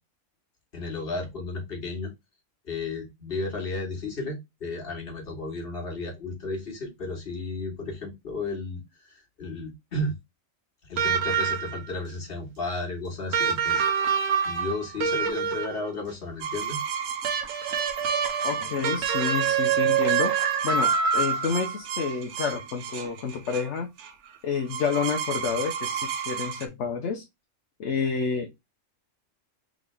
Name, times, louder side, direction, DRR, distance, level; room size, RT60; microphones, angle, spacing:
voice 1, 0.7-2.1 2.6-10.2 10.9-13.9 14.4-16.8, left 2 dB, 45° left, 2 dB, 1.6 m, -33 dB
sound 1, 11.0-11.9 13.3-15.9 17.2-21.7 23.0-23.1, right 7 dB, 90° right, 1.3 m, -26 dB
sound 2, 16.4-26.7, right 7 dB, 65° right, 1.0 m, -34 dB
voice 2, 18.4-20.4 20.6-23.9 24.4-27.2 27.8-28.5, left 6 dB, 65° left, 3 dB, 1.0 m, -29 dB
3.8 x 3.7 x 3.3 m, 0.20 s
omnidirectional pair, 1.3 m